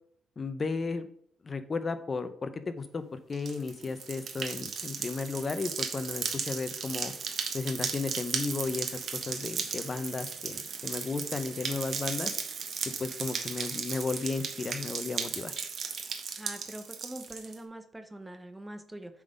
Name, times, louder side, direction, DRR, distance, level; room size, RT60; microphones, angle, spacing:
voice 1, 0.4-1.1 1.4-7.1 7.5-12.3 13.0-15.6, left 4 dB, 35° left, 11 dB, 0.8 m, -34 dB
sound 1, 3.3-17.5, right 6 dB, 55° right, 1.1 m, -36 dB
voice 2, 16.4-19.2, right 1 dB, 10° right, 8 dB, 0.8 m, -43 dB
7.4 x 4.1 x 5.1 m, 0.63 s
cardioid pair, 90°, 0 cm